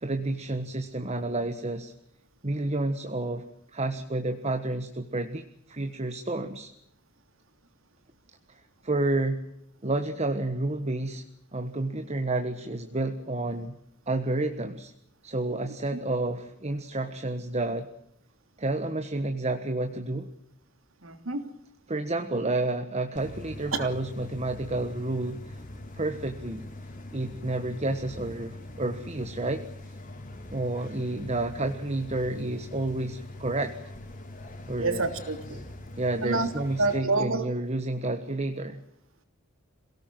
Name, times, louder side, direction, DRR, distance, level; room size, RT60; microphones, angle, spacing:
voice 1, 0.0-1.9 2.4-3.4 3.7-6.7 8.8-9.4 9.8-11.2 11.5-13.8 14.1-14.9 15.2-17.9 18.6-20.3 21.9-25.6 25.9-26.6 27.1-29.6 30.5-33.8 34.7-35.1 36.0-38.8, right 2 dB, 35° right, 7 dB, 1.5 m, -30 dB
voice 2, 21.0-21.4 23.7-23.9 34.8-35.6 36.2-36.5 36.8-37.4, right 3 dB, 75° right, 8 dB, 3.2 m, -27 dB
sound 1, 23.2-37.0, left 1 dB, 40° left, 4.0 m, -43 dB
27.5 x 18.0 x 7.7 m, 0.79 s
head